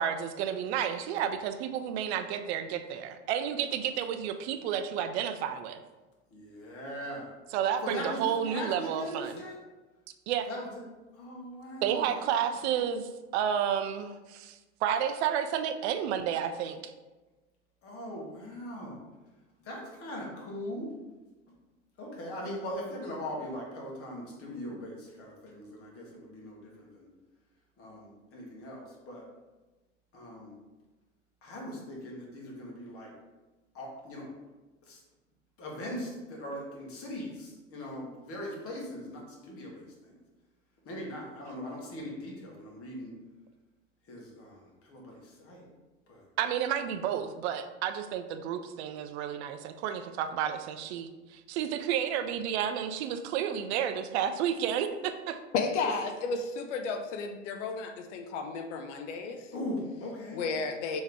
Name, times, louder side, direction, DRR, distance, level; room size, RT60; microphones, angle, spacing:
voice 1, 0.0-5.8 7.5-9.4 10.3-10.5 11.8-16.9 46.4-55.4, right 9 dB, 65° right, 9 dB, 0.5 m, -31 dB
voice 2, 6.3-7.3 7.8-9.6 10.5-10.7 11.2-12.3 17.8-19.0 19.6-20.9 22.0-27.1 27.8-29.2 30.1-30.5 31.4-33.1 33.7-34.3 34.9-35.0 35.6-40.1 40.8-43.1 44.1-44.6 44.9-45.7 46.1-46.2 55.8-55.9 59.5-60.4, left 1 dB, 40° left, -2 dB, 1.4 m, -40 dB
voice 3, 55.5-59.5 60.3-61.0, left 4 dB, 75° left, 6 dB, 0.5 m, -33 dB
3.5 x 3.0 x 3.4 m, 1.2 s
hypercardioid pair, 85°, 36 cm